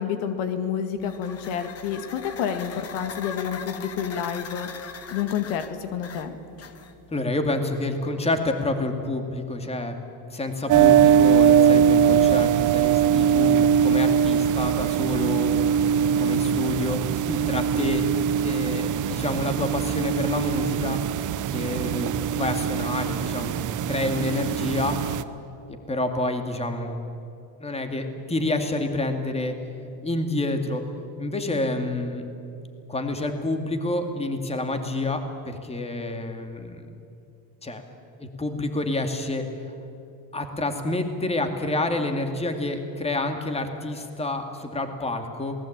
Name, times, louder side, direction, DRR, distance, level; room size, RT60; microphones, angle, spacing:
voice 1, 0.0-4.7 5.1-6.4, left 8 dB, 80° left, 8 dB, 2.2 m, -29 dB
sound 1, 1.0-7.1, left 6 dB, 30° left, 1.5 m, -40 dB
voice 2, 7.1-10.0 10.3-15.6 16.2-18.0 18.4-21.0 21.5-25.0 25.9-27.0 27.6-29.5 30.0-30.8 31.2-32.3 32.9-36.9 37.6-37.8 38.2-39.4 40.3-45.5, left 2 dB, 15° left, 6 dB, 2.4 m, -28 dB
sound 2, 10.7-25.2, right 8 dB, 40° right, 0.9 m, -21 dB
27.0 x 19.5 x 8.8 m, 2.6 s
cardioid pair, 130°, 46 cm